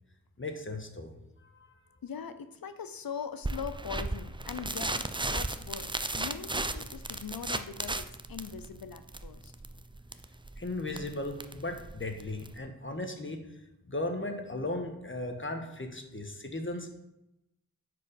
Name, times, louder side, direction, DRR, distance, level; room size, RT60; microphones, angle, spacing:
voice 1, 0.4-1.1 1.4-1.7 10.6-13.5 13.9-16.9, left 2 dB, 35° left, 4 dB, 1.5 m, -36 dB
voice 2, 2.0-9.5, left 7 dB, 75° left, 11 dB, 0.7 m, -41 dB
sound 1, 3.4-12.6, right 2 dB, 15° right, 0.6 m, -36 dB
9.3 x 5.0 x 5.2 m, 0.89 s
cardioid pair, 45°, 35 cm